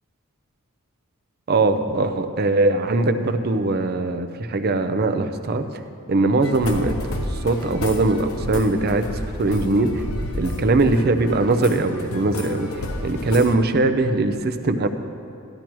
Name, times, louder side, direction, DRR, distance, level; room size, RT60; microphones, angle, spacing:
voice 1, 1.5-5.6 6.1-6.9 7.4-10.0 10.4-12.7 13.0-14.9, right 2 dB, 45° right, 9 dB, 0.5 m, -21 dB
sound 1, 6.4-13.6, left 1 dB, 75° left, 0.9 m, -31 dB
13.5 x 11.5 x 3.1 m, 2.8 s
head